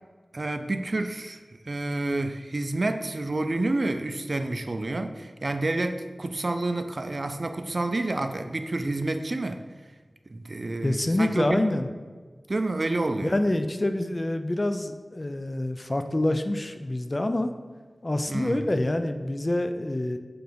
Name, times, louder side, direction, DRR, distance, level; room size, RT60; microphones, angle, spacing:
voice 1, 0.3-9.6 10.3-11.6 12.5-13.4 18.3-18.7, right 2 dB, 60° right, 8 dB, 0.5 m, -29 dB
voice 2, 10.8-11.9 13.2-17.5 18.0-20.2, left 1 dB, 40° left, 8 dB, 0.5 m, -26 dB
7.0 x 3.9 x 5.1 m, 1.5 s
wide cardioid pair, 40°, 0 cm